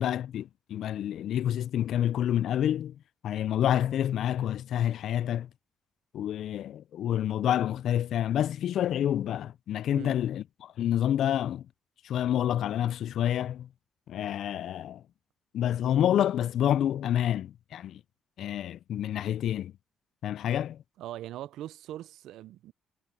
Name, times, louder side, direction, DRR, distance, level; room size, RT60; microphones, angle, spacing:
voice 1, 0.0-3.0 3.2-5.5 6.1-11.7 12.0-13.7 14.1-15.0 15.5-18.0 18.4-19.7 20.2-20.8, left 11 dB, 70° left, 0.3 m, -28 dB
voice 2, 21.0-22.7, right 13 dB, 85° right, 0.4 m, -41 dB
cardioid pair, 90°, 0 cm